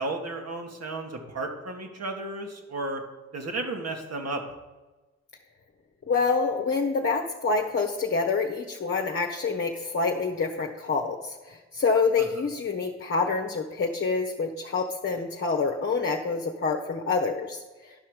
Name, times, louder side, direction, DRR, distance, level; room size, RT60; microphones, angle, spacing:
voice 1, 0.0-3.0 3.3-4.4 12.2-12.3, right 2 dB, 50° right, 3 dB, 1.8 m, -33 dB
voice 2, 6.1-17.9, left 4 dB, 35° left, 1 dB, 1.1 m, -27 dB
11.0 x 5.7 x 5.0 m, 1.2 s
hypercardioid pair, 45°, 34 cm